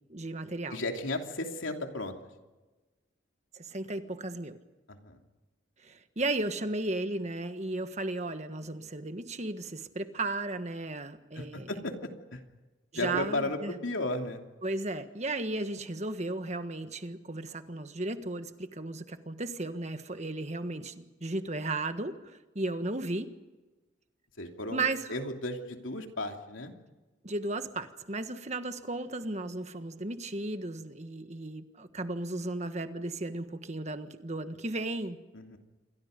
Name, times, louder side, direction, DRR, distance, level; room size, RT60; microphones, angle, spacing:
voice 1, 0.1-0.8 3.5-4.6 5.8-11.7 12.9-13.7 14.6-22.2 22.5-23.3 24.7-25.2 27.2-35.2, right 2 dB, 35° right, 9 dB, 1.5 m, -35 dB
voice 2, 0.7-2.1 4.9-5.2 11.3-12.4 12.9-14.4 24.4-26.7 35.3-35.6, left 2 dB, 80° left, 3 dB, 3.0 m, -35 dB
28.0 x 23.5 x 5.3 m, 1.2 s
head